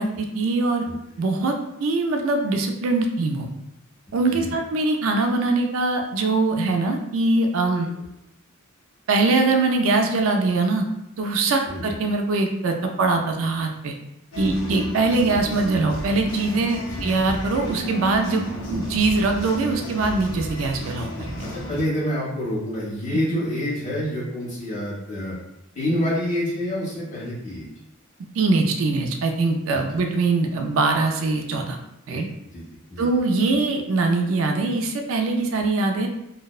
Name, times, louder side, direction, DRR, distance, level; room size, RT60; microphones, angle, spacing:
voice 1, 0.0-0.8 1.2-1.5 1.8-3.5 4.1-7.9 9.1-10.8 11.2-13.9 14.4-18.4 18.7-21.3 28.4-31.8 32.1-32.3 33.0-36.1, right 3 dB, 70° right, 4 dB, 0.3 m, -22 dB
voice 2, 0.8-1.2 4.1-4.5 7.8-8.1 11.6-12.0 14.4-14.9 16.9-17.1 18.3-18.4 21.4-25.4 25.7-27.7 29.7-30.0 32.1-32.2 32.5-33.1, equal, 40° left, -8 dB, 1.2 m, -28 dB
sound 1, 14.3-21.8, equal, 70° left, 0.6 m, -33 dB
2.6 x 2.1 x 2.3 m, 0.86 s
head